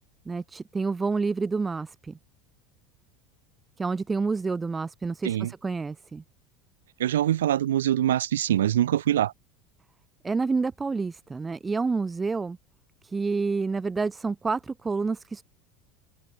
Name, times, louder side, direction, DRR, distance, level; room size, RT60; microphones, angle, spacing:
voice 1, 0.3-2.2 3.8-6.2 10.2-12.6 13.0-15.4, right 4 dB, 20° right, 0.4 m, -28 dB
voice 2, 7.0-9.3, right 12 dB, 80° right, 0.4 m, -24 dB
hypercardioid pair, 80°, 0 cm